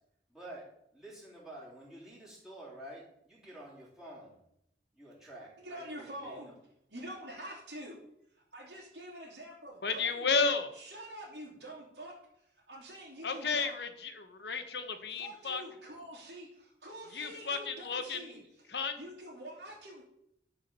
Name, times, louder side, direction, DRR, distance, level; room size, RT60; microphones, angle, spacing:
voice 1, 0.3-0.6 0.9-4.4 4.9-6.5, right 1 dB, 5° right, -7 dB, 3.3 m, -49 dB
voice 2, 5.6-6.5 6.9-8.0 8.3-10.3 10.7-13.8 15.1-20.0, right 1 dB, 60° right, -8 dB, 3.2 m, -47 dB
voice 3, 9.8-10.7 13.2-15.6 17.1-18.2 18.7-18.9, left 4 dB, 65° left, 8 dB, 1.1 m, -32 dB
11.5 x 4.9 x 6.9 m, 0.77 s
head